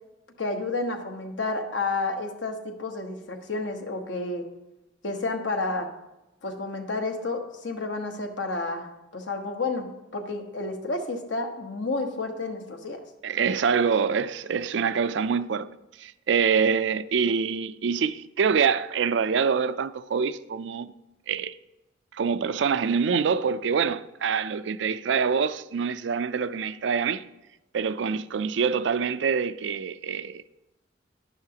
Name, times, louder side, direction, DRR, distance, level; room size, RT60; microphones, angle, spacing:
voice 1, 0.4-4.5 5.0-5.9 6.4-13.0, left 3 dB, 75° left, 1.2 m, -31 dB
voice 2, 13.2-15.7 16.0-20.9 21.3-21.6 22.1-27.2 27.7-30.4, right 6 dB, 70° right, 0.4 m, -25 dB
11.5 x 10.5 x 2.9 m
head